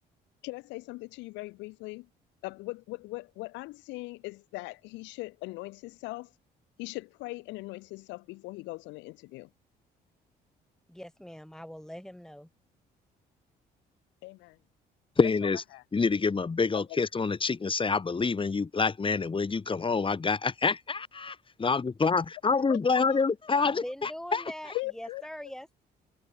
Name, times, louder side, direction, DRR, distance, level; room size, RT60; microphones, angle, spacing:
voice 1, 0.4-2.1 2.4-6.3 6.8-9.5 14.2-14.6 15.7-15.8 16.7-16.8 22.7-23.2 24.7-25.2, left 22 dB, 90° left, 4.4 m, -40 dB
voice 2, 10.9-12.5 23.6-25.7, equal, 5° left, 5.7 m, -42 dB
voice 3, 15.2-15.6 15.9-24.4, left 4 dB, 30° left, 2.2 m, -27 dB
supercardioid pair, 75°, 18 cm